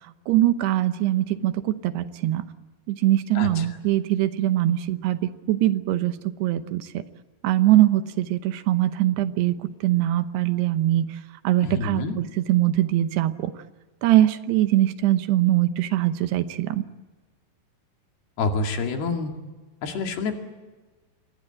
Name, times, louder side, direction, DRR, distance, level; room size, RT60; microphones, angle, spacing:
voice 1, 0.3-2.4 2.9-5.2 5.5-6.1 6.4-6.9 7.4-9.6 9.8-11.1 11.4-13.5 14.0-16.9, right 14 dB, 75° right, 11 dB, 3.0 m, -22 dB
voice 2, 3.4-3.7 11.6-12.2 18.4-19.3 19.8-20.4, left 4 dB, 65° left, 4 dB, 4.2 m, -27 dB
27.5 x 21.0 x 8.8 m, 1.3 s
omnidirectional pair, 4.9 m